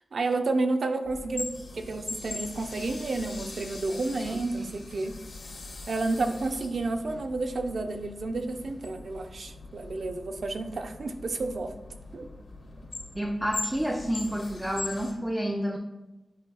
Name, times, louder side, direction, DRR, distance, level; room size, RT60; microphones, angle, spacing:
voice 1, 0.1-5.2 5.9-11.8 12.1-12.3, right 3 dB, 70° right, 6 dB, 0.5 m, -31 dB
sound 1, 1.0-15.1, left 3 dB, 75° left, 1.5 m, -41 dB
voice 2, 4.2-4.7 13.1-15.8, equal, 15° right, -1 dB, 0.5 m, -30 dB
9.1 x 4.7 x 2.3 m, 1.0 s
wide cardioid pair, 95°, 0 cm